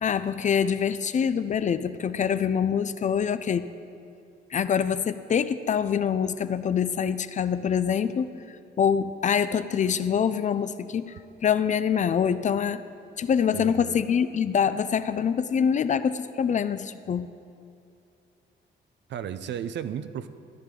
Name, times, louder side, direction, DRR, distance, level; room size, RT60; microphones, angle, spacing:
voice 1, 0.0-3.7 4.5-8.3 8.8-11.1 11.4-12.9 13.2-17.3, left 7 dB, 40° left, 13 dB, 0.4 m, -25 dB
voice 2, 13.5-14.0 19.1-20.3, right 9 dB, 65° right, 11 dB, 0.6 m, -34 dB
14.0 x 10.5 x 3.8 m, 2.5 s
cardioid pair, 90°, 20 cm